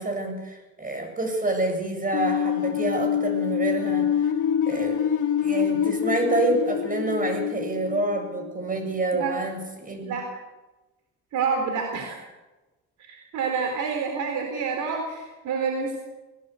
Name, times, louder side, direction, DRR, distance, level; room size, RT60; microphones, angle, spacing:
voice 1, 0.0-4.1 4.6-5.1 5.4-10.2, right 2 dB, 25° right, 4 dB, 7.8 m, -27 dB
sound 1, 2.1-9.0, left 9 dB, 75° left, 2.8 m, -26 dB
voice 2, 11.3-12.2 13.0-16.0, right 5 dB, 80° right, 3 dB, 3.8 m, -28 dB
24.5 x 18.0 x 8.3 m, 1.1 s
cardioid pair, 90°, 30 cm